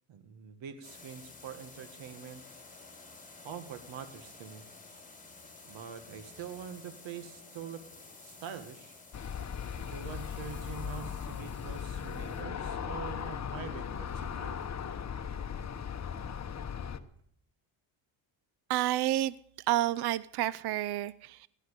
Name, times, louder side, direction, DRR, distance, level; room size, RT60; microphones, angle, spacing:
voice 1, 0.1-2.4 3.4-4.6 5.7-7.8 8.2-9.0 9.8-14.6, right 8 dB, 70° right, 1.9 m, -45 dB
sound 1, 0.8-12.4, left 3 dB, 15° left, 4.3 m, -53 dB
Aircraft, 9.1-17.0, left 7 dB, 35° left, 1.2 m, -38 dB
voice 2, 18.7-19.3 19.7-21.5, right 14 dB, 55° right, 0.6 m, -29 dB
16.5 x 11.5 x 6.7 m
cardioid pair, 95°, 48 cm